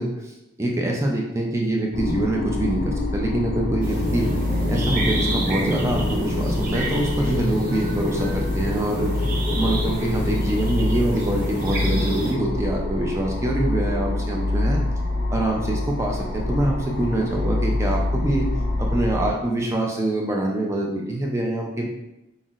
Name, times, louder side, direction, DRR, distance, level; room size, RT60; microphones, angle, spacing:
voice 1, 0.0-4.3 4.7-9.1 9.5-14.8 15.3-18.5 18.8-21.9, right 1 dB, 15° right, -1 dB, 0.4 m, -25 dB
sound 1, 1.9-19.3, left 2 dB, 45° left, 0.4 m, -26 dB
sound 2, 3.8-12.3, right 1 dB, 40° right, 0.7 m, -28 dB
5.5 x 2.1 x 2.4 m, 0.93 s
head